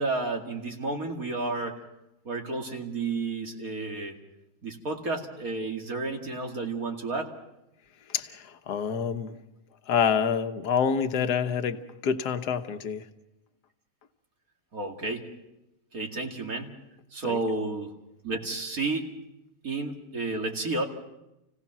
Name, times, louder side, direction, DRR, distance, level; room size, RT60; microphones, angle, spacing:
voice 1, 0.0-1.8 2.2-4.2 4.6-7.3 14.7-15.3 15.9-16.8 17.1-17.9 18.2-19.1 19.6-20.8, right 3 dB, 55° right, 2 dB, 2.7 m, -31 dB
voice 2, 8.1-9.4 9.9-13.1 17.2-17.4, left 7 dB, 70° left, 7 dB, 1.6 m, -27 dB
30.0 x 17.0 x 6.0 m, 0.90 s
omnidirectional pair, 1.8 m